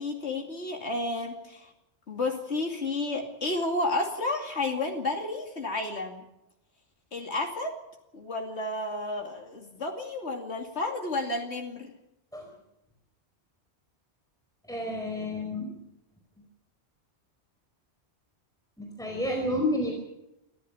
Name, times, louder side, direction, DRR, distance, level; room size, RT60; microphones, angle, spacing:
voice 1, 0.0-1.7 2.1-6.2 7.1-7.8 8.1-11.9, left 2 dB, 80° left, 1 dB, 3.0 m, -31 dB
voice 2, 14.7-15.7 18.8-20.0, left 1 dB, 5° left, 1 dB, 4.7 m, -30 dB
25.5 x 15.0 x 7.0 m, 0.89 s
omnidirectional pair, 1.1 m